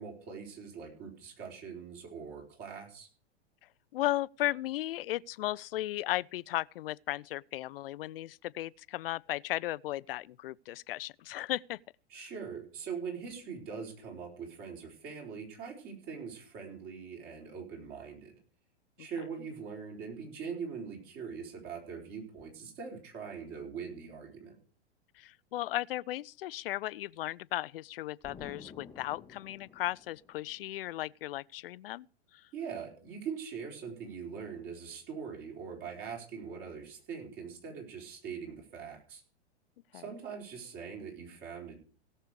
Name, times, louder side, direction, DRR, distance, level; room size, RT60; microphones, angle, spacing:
voice 1, 0.0-3.1 12.1-18.4 19.0-24.5 32.5-39.2 39.9-41.8, right 6 dB, 40° right, 4.1 m, -42 dB
voice 2, 3.9-11.8 19.0-19.1 25.1-32.1 32.3-32.5 39.9-40.0, left 15 dB, 60° left, 0.4 m, -36 dB
Explosion, 28.2-30.9, left 5 dB, 10° left, 0.8 m, -52 dB
17.0 x 6.7 x 4.7 m
hypercardioid pair, 105°, 33 cm